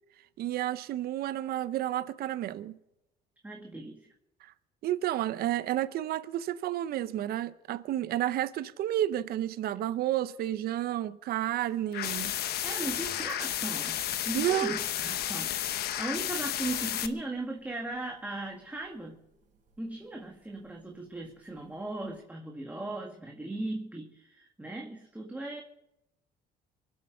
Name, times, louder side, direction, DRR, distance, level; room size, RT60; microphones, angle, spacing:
voice 1, 0.4-2.8 4.4-4.5 4.8-12.3 14.3-14.8, right 13 dB, 65° right, 0.7 m, -31 dB
voice 2, 3.4-4.1 12.6-19.2 19.8-25.6, right 2 dB, 10° right, 1.9 m, -38 dB
sound 1, 11.9-17.1, left 11 dB, 70° left, 1.0 m, -32 dB
sound 2, 12.1-22.2, right 6 dB, 50° right, 5.3 m, -55 dB
24.0 x 8.0 x 6.6 m
cardioid pair, 110°, 17 cm